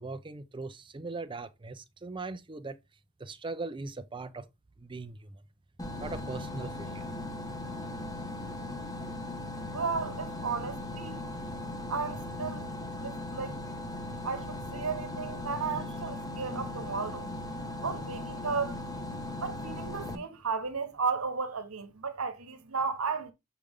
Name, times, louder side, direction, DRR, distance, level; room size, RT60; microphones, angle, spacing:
voice 1, 0.0-2.8 3.2-4.5 4.8-5.4 6.0-7.1, right 3 dB, 25° right, 0.5 m, -40 dB
sound 1, 5.8-20.2, left 2 dB, 15° left, 1.0 m, -38 dB
voice 2, 9.7-11.2 11.9-12.7 13.0-13.6 14.2-17.3 17.8-18.8 19.4-23.3, right 5 dB, 75° right, 1.1 m, -34 dB
6.8 x 5.0 x 3.5 m
head